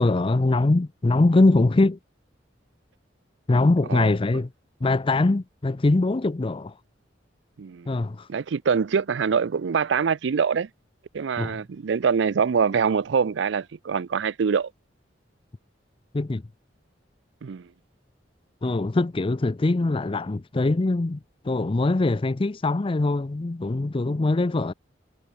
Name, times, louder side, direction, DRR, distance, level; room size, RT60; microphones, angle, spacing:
voice 1, 0.0-2.0 3.5-4.5 4.8-6.7 7.9-8.3 11.4-11.6 16.1-16.4 18.6-21.2 21.4-24.7, left 2 dB, 30° left, 0.5 m, -22 dB
voice 2, 7.6-7.9 8.3-10.7 11.1-14.7 17.4-17.7, right 6 dB, 75° right, 0.4 m, -24 dB
head